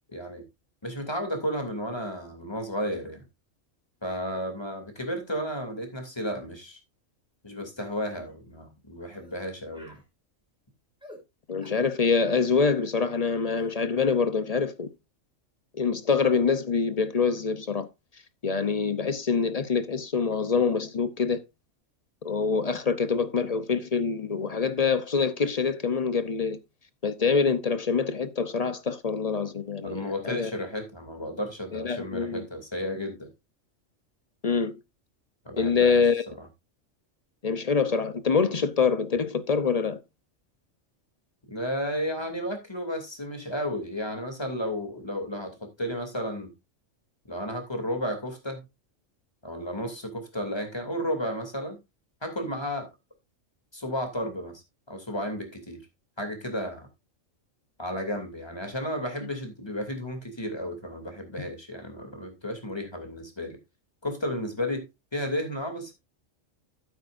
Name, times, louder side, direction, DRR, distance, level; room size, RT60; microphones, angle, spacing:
voice 1, 0.1-0.4 0.8-3.2 4.0-6.8 7.4-10.0 29.8-33.3 35.4-36.5 41.5-46.5 47.3-48.7 49.4-51.8 52.2-52.9 53.7-55.8 56.2-56.9 57.8-63.6 64.0-64.9 65.1-65.9, equal, 20° left, 2.8 m, -33 dB
sound 1, 7.6-7.7 8.1-8.3 9.1-9.4 9.7-10.1 11.0-11.2 11.6-11.9 13.5-13.8, equal, 5° right, 3.6 m, -50 dB
voice 2, 11.5-14.9 15.7-17.9 18.4-21.4 22.2-26.6 27.0-30.5 31.7-32.5 34.4-34.7 35.6-36.2 37.4-40.0 61.4-61.5, left 5 dB, 35° left, 0.7 m, -25 dB
12.0 x 9.2 x 2.6 m
omnidirectional pair, 1.3 m